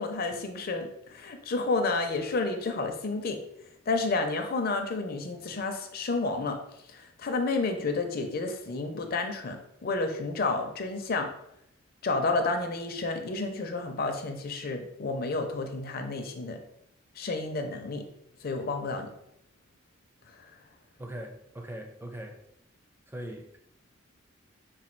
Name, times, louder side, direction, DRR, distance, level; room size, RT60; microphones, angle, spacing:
voice 1, 0.0-3.4 3.9-6.6 6.9-11.3 12.0-16.6 17.2-18.0 18.4-19.1, left 3 dB, 45° left, 6 dB, 0.5 m, -30 dB
voice 2, 21.0-22.4 23.1-23.6, right 1 dB, 10° right, 3 dB, 0.4 m, -40 dB
4.1 x 2.2 x 4.4 m, 0.76 s
head